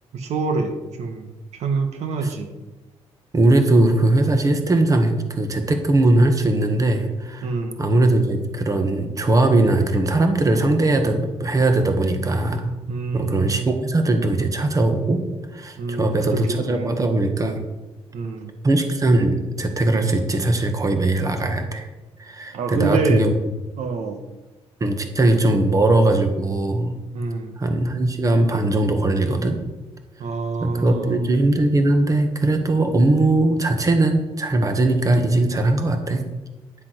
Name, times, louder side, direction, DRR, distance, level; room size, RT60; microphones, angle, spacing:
voice 1, 0.1-2.5 7.4-7.8 12.9-13.8 15.8-17.0 18.1-18.5 22.5-23.3 23.8-24.2 27.1-27.6 30.2-31.3, right 4 dB, 75° right, 6 dB, 1.4 m, -27 dB
voice 2, 3.3-7.5 7.8-12.7 13.1-15.2 15.5-17.6 18.6-21.9 22.2-23.3 24.8-27.0 27.6-29.6 30.6-36.2, right 2 dB, 30° right, 6 dB, 1.6 m, -20 dB
11.5 x 7.5 x 6.0 m, 1.1 s
cardioid pair, 100°, 11 cm